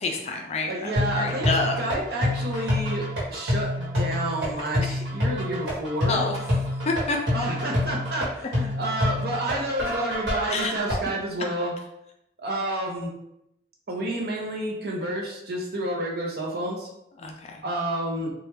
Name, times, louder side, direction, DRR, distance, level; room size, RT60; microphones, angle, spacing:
voice 1, 0.0-1.8 2.3-2.6 4.8-5.0 6.1-6.4 6.9-7.2 10.5-10.7 17.2-17.6, left 3 dB, 35° left, 2 dB, 0.4 m, -28 dB
voice 2, 0.7-1.5 1.8-6.2 7.3-11.7 12.4-13.1 13.9-16.9 17.6-18.3, right 1 dB, 55° right, -1 dB, 0.7 m, -30 dB
sound 1, 1.0-10.9, left 1 dB, 90° right, 1.3 m, -27 dB
3.1 x 2.3 x 3.2 m, 0.83 s
head